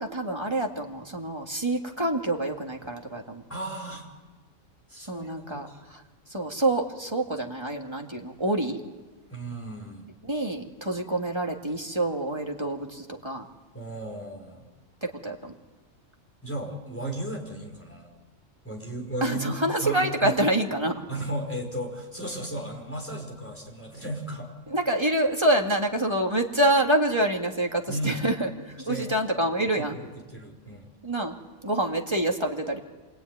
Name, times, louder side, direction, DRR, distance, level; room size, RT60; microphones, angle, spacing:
voice 1, 0.0-3.4 5.1-6.0 6.3-8.8 10.2-13.5 15.0-15.5 19.2-21.0 24.7-30.0 31.0-31.4 31.6-32.8, right 1 dB, 20° right, 1 dB, 2.3 m, -27 dB
voice 2, 3.5-4.1 4.9-5.8 9.3-10.1 13.7-14.7 16.4-18.1 18.6-20.4 21.1-24.5 27.9-28.3 28.8-29.1 29.7-30.9, right 1 dB, 10° left, 0 dB, 5.3 m, -35 dB
27.0 x 22.0 x 9.6 m, 1.2 s
omnidirectional pair, 1.4 m